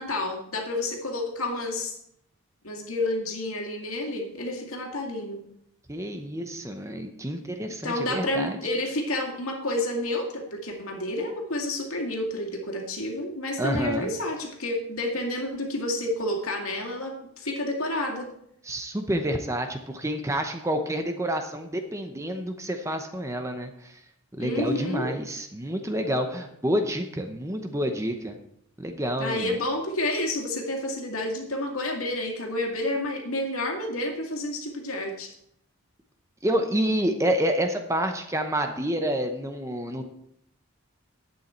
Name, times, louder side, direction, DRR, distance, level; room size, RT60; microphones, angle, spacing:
voice 1, 0.0-1.9 2.6-5.4 7.8-18.3 24.4-25.1 29.2-35.3, left 1 dB, 75° left, 2 dB, 2.2 m, -30 dB
voice 2, 5.9-8.6 13.6-14.1 18.6-24.0 24.4-28.4 28.8-29.6 36.4-40.0, equal, 15° right, 6 dB, 0.8 m, -28 dB
11.0 x 8.5 x 4.4 m, 0.73 s
head